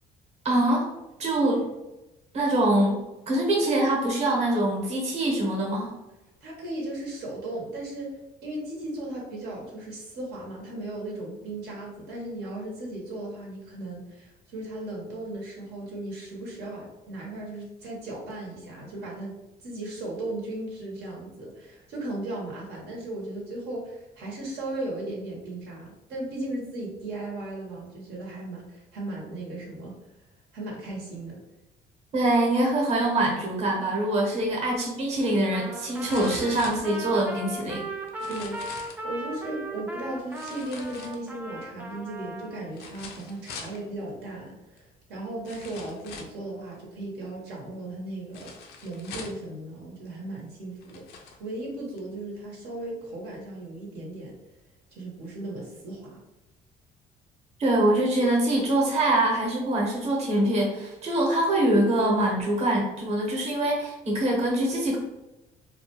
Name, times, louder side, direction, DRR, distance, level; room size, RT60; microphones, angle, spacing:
voice 1, 0.4-0.8 1.2-1.6 2.3-3.0 3.3-5.9 32.1-37.8 57.6-65.0, right 1 dB, 40° right, -2 dB, 0.9 m, -24 dB
voice 2, 6.4-19.3 19.6-29.9 30.5-31.4 34.3-34.6 38.3-48.5 48.8-51.0 51.4-54.3 54.9-56.2, right 1 dB, 75° right, -3 dB, 0.8 m, -36 dB
Trumpet, 35.5-42.6, right 1 dB, 10° right, 0.3 m, -38 dB
sound 1, 36.1-37.4 38.1-39.0 40.3-41.5 42.7-43.8 44.8-44.9 45.5-46.4 48.3-49.5 50.3-50.4 50.8-51.4 52.0-52.1, left 4 dB, 70° left, 0.5 m, -42 dB
2.3 x 2.1 x 2.8 m, 0.97 s
cardioid pair, 110°, 17 cm